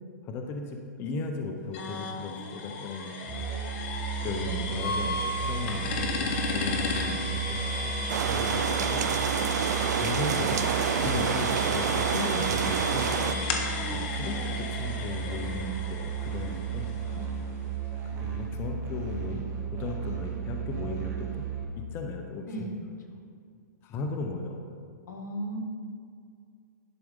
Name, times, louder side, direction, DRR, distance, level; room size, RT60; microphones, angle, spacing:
voice 1, 0.2-3.3 4.2-7.9 8.3-9.0 10.0-10.7 11.0-13.1 13.9-16.9 18.2-19.4 19.7-21.4 21.9-22.5 23.8-24.6, left 3 dB, 25° left, 3 dB, 0.7 m, -36 dB
sound 1, 1.7-17.4, left 3 dB, 40° left, 1.1 m, -34 dB
Musical instrument, 3.3-21.6, right 7 dB, 25° right, 1.3 m, -34 dB
sound 2, 8.1-13.3, right 7 dB, 65° right, 0.5 m, -28 dB
voice 2, 25.1-25.6, right 1 dB, 80° left, 1 dB, 1.7 m, -39 dB
11.0 x 4.6 x 5.2 m, 2.2 s
hypercardioid pair, 145°, 10 cm